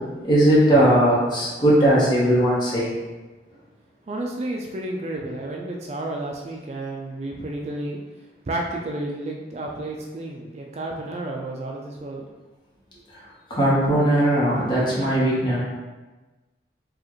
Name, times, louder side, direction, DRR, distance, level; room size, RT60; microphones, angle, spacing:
voice 1, 0.2-3.0 13.5-15.6, right 1 dB, 25° left, -7 dB, 1.0 m, -19 dB
voice 2, 4.1-8.0 8.5-12.3, right 1 dB, 35° right, -1 dB, 0.3 m, -31 dB
4.7 x 2.4 x 3.0 m, 1.2 s
head